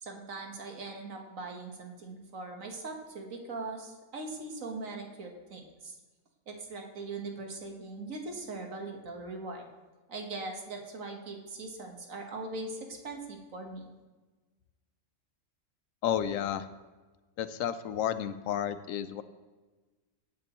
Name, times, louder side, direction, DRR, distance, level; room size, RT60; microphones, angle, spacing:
voice 1, 0.0-5.9 6.5-9.7 10.1-13.9, right 3 dB, 75° right, 2 dB, 1.8 m, -40 dB
voice 2, 16.0-16.7 17.4-19.2, left 10 dB, 80° left, 13 dB, 1.0 m, -31 dB
17.5 x 8.3 x 3.0 m, 1.3 s
omnidirectional pair, 1.4 m